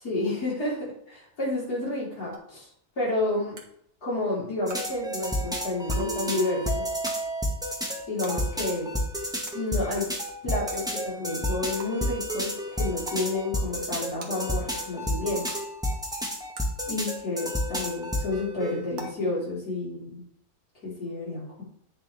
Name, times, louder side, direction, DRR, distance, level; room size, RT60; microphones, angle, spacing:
voice 1, 0.0-2.7 3.0-3.6 4.0-6.8 8.1-9.0 9.5-10.1 10.4-15.5 16.9-20.2 20.8-21.6, left 2 dB, 75° left, -7 dB, 4.7 m, -30 dB
sound 1, 2.3-2.4 3.5-3.6 4.7-4.8 5.9-6.0 7.0-7.2 8.2-8.3 9.4-9.5 10.7-10.8 11.8-11.9 13.0-13.2 14.2-14.3 15.5-15.6 16.5-16.6 17.7-17.8 18.9-19.0, right 4 dB, 75° right, 1.9 m, -40 dB
sound 2, 4.7-19.1, equal, 5° right, 1.2 m, -31 dB
8.9 x 6.9 x 3.5 m, 0.69 s
omnidirectional pair, 1.6 m